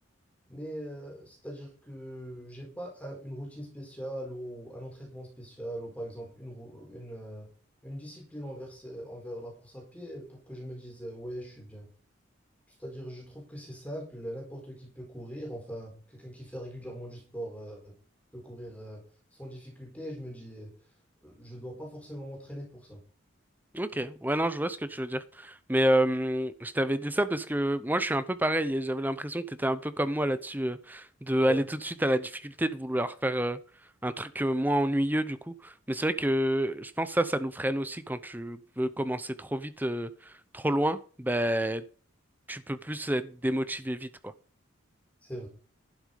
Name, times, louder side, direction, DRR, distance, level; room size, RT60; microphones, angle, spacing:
voice 1, 0.5-7.5 7.8-11.9 12.7-18.0 18.3-20.7 21.2-23.0 31.5-31.6 45.2-45.5, equal, 5° left, 4.4 m, -41 dB
voice 2, 23.7-33.6 34.0-41.8 42.5-44.3, right 1 dB, 10° right, 0.7 m, -29 dB
11.5 x 7.8 x 5.3 m
head